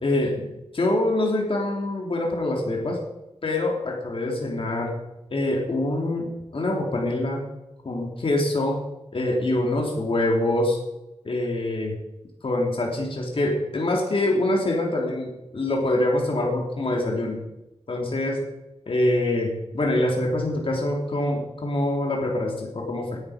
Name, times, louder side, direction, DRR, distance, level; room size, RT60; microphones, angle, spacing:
voice 1, 0.0-3.0 3.4-4.9 5.3-7.5 7.8-8.8 9.1-10.8 11.2-12.0 12.4-17.4 17.9-18.5 18.9-23.2, left 1 dB, 55° left, -1 dB, 3.2 m, -25 dB
18.0 x 12.5 x 5.1 m, 0.95 s
wide cardioid pair, 120°, 11 cm